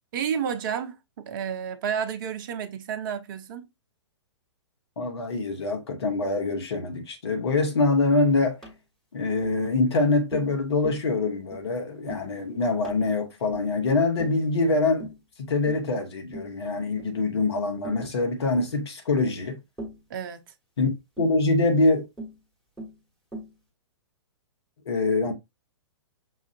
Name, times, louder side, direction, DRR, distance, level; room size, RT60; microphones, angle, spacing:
voice 1, 0.1-3.7 20.1-20.4, right 7 dB, 45° right, 0.7 m, -31 dB
voice 2, 5.0-8.6 9.1-15.1 15.4-19.6 20.8-20.9 21.2-22.0 24.8-25.3, left 3 dB, 65° left, 1.3 m, -24 dB
Tap, 8.6-8.8 9.4-9.6 10.3-10.6 10.8-11.1 11.5-11.7 12.1-12.3 12.8-13.1 13.5-13.8 14.2-14.4 15.0-15.2 15.7-15.9 16.3-16.6 17.0-17.2 17.8-18.1 18.5-18.7 19.8-20.1 21.2-21.4 22.2-22.4 22.8-23.0 23.3-23.6, right 1 dB, ahead, 1.4 m, -40 dB
6.2 x 2.5 x 2.5 m
figure-of-eight pair, 115°, 15 cm